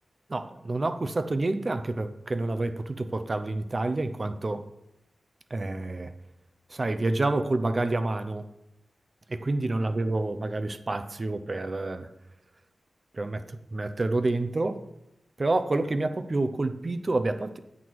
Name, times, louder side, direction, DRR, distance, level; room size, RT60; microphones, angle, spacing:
voice 1, 0.3-4.7 5.5-6.1 6.7-8.5 9.3-12.1 13.1-14.8 15.4-17.6, right 2 dB, 35° right, 9 dB, 0.6 m, -28 dB
8.9 x 6.1 x 4.7 m, 0.87 s
wide cardioid pair, 85°, 0 cm